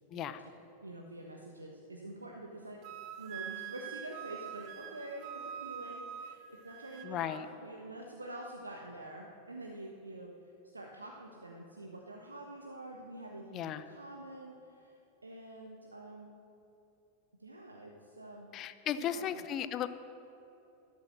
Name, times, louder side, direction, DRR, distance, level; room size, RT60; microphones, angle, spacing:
voice 1, 0.1-0.5 0.8-10.3 10.7-14.9 15.2-16.3 17.4-18.5 19.1-19.4, right 1 dB, 80° right, 1 dB, 1.2 m, -47 dB
Wind instrument woodwind instrument, 2.8-7.1, right 9 dB, 40° right, 0.8 m, -44 dB
voice 2, 7.0-7.5 13.5-13.8 18.5-19.9, left 10 dB, 35° left, 13 dB, 0.6 m, -35 dB
13.0 x 12.5 x 6.4 m, 2.9 s
figure-of-eight pair, 90°, 0 cm